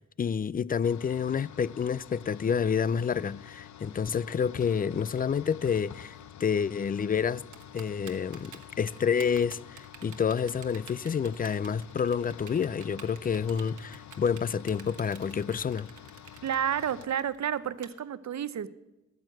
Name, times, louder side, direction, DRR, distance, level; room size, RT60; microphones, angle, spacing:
voice 1, 0.0-7.4 7.7-15.9, left 7 dB, 30° left, 0.3 m, -29 dB
sound 1, 0.8-17.1, left 10 dB, 70° left, 0.6 m, -48 dB
Typing, 7.5-17.9, right 8 dB, 85° right, 1.2 m, -49 dB
voice 2, 16.4-18.7, right 9 dB, 70° right, 0.7 m, -30 dB
12.5 x 9.1 x 7.7 m
cardioid pair, 60°, 29 cm